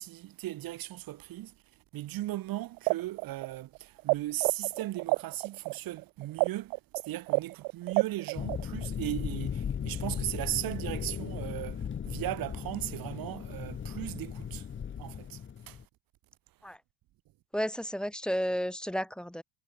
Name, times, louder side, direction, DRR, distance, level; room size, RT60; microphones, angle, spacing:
voice 1, 0.0-1.5 1.9-6.8 7.0-14.7 15.0-15.4 15.7-15.8, right 15 dB, 45° right, 6.2 m, -37 dB
sound 1, 2.8-4.1 4.4-8.9, right 40 dB or more, 70° right, 1.2 m, -28 dB
sound 2, 8.4-15.8, left 8 dB, 25° left, 4.0 m, -37 dB
voice 2, 17.5-19.4, equal, ahead, 0.6 m, -32 dB
cardioid pair, 155°, 48 cm